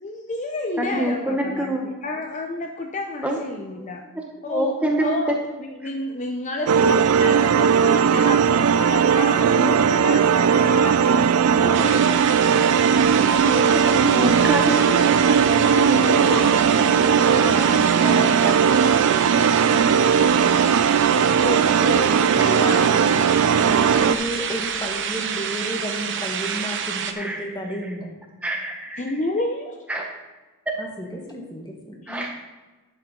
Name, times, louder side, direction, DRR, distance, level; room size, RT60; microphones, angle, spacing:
voice 1, 0.0-4.0 4.4-4.7 5.0-5.3 5.6-12.2 14.0-14.2 14.6-15.1 15.4-17.9 19.6-20.3 20.7-20.8 21.1-22.3 29.0-29.8 32.0-32.3, left 2 dB, 35° left, 3 dB, 0.6 m, -30 dB
voice 2, 0.8-1.9 3.2-3.4 3.8-3.9 4.1-5.3 5.8-5.9 13.3-14.8 22.4-22.5 27.2-27.9 28.4-29.1 29.9-30.2 32.1-32.3, right 1 dB, 5° right, 1 dB, 0.8 m, -26 dB
sound 1, 6.7-24.2, right 7 dB, 75° right, 0.4 m, -18 dB
sound 2, 11.7-27.1, right 7 dB, 55° right, 0.8 m, -28 dB
voice 3, 15.7-19.1 21.7-23.1 23.6-28.1 30.8-32.0, equal, 20° left, 0 dB, 1.6 m, -32 dB
11.0 x 7.6 x 3.8 m, 1.2 s
head